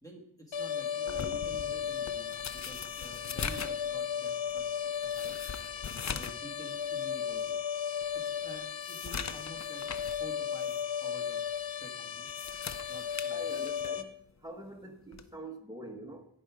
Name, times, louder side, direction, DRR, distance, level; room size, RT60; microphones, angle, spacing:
voice 1, 0.0-2.3 2.5-5.3 6.0-7.6 8.1-9.8 10.2-11.4 11.8-12.3 12.9-13.4, right 1 dB, 5° left, 2.0 m, -50 dB
sound 1, 0.5-14.0, left 8 dB, 80° left, 0.8 m, -35 dB
sound 2, 1.1-6.5 6.8-6.9 7.5-7.6 8.0-10.2 10.6-10.8 12.1-14.0 15.1-15.3, left 6 dB, 40° left, 0.5 m, -41 dB
voice 2, 13.3-14.1 14.4-16.3, right 1 dB, 10° right, 1.3 m, -45 dB
13.0 x 5.4 x 4.8 m
wide cardioid pair, 125°, 46 cm